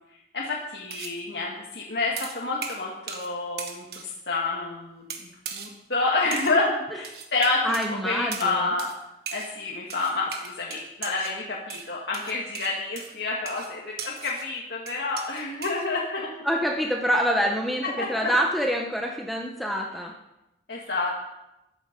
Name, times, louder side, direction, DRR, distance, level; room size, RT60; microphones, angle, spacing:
voice 1, 0.3-7.7 8.0-8.9 9.3-16.3 18.0-18.3 20.7-21.2, left 3 dB, 70° left, -3 dB, 2.1 m, -29 dB
sound 1, 0.9-1.2 2.2-3.3 3.6-4.1 5.1-5.7 6.3-6.6 7.0-7.9 8.3-8.5 8.8-9.0 9.3-9.5 9.9-11.4 11.7-14.5 14.9-15.9, right 6 dB, 60° right, 1.7 m, -38 dB
voice 2, 7.6-8.7 16.4-17.8 18.1-20.1, equal, ahead, 0 dB, 1.2 m, -26 dB
14.0 x 12.0 x 5.4 m, 0.92 s
head